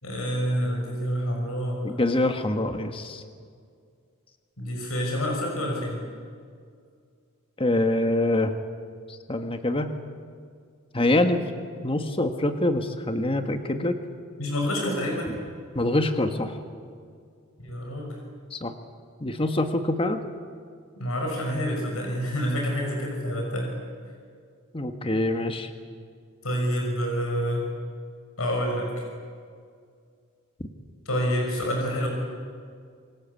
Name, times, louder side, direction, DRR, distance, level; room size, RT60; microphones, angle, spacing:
voice 1, 0.0-2.0 4.6-6.0 14.4-15.3 17.6-18.2 21.0-23.7 26.4-27.6 28.4-28.9 31.0-32.1, equal, 80° left, 0 dB, 6.1 m, -27 dB
voice 2, 1.8-3.2 7.6-8.5 9.3-9.9 10.9-11.4 11.8-14.0 15.7-16.6 18.5-18.7 19.2-20.2 24.7-25.7, left 1 dB, 25° left, 7 dB, 1.5 m, -25 dB
27.5 x 23.5 x 8.5 m, 2.2 s
head